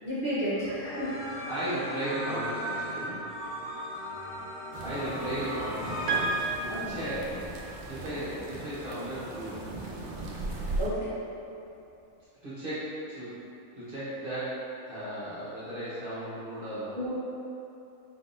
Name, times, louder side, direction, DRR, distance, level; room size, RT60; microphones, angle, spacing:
voice 1, 0.0-1.1 6.7-7.0 10.8-11.1 17.0-17.1, equal, 40° left, -13 dB, 1.2 m, -31 dB
sound 1, 0.8-6.4, left 1 dB, 70° left, 1.3 m, -36 dB
voice 2, 1.5-3.2 4.8-7.4 7.9-9.6 12.4-13.4 13.7-17.0, right 1 dB, 45° right, -12 dB, 1.1 m, -36 dB
sound 2, 4.7-10.9, right 2 dB, 65° right, 0.5 m, -38 dB
Piano, 6.1-7.8, right 6 dB, 80° right, 1.1 m, -33 dB
4.4 x 3.6 x 2.6 m, 2.8 s
omnidirectional pair, 1.4 m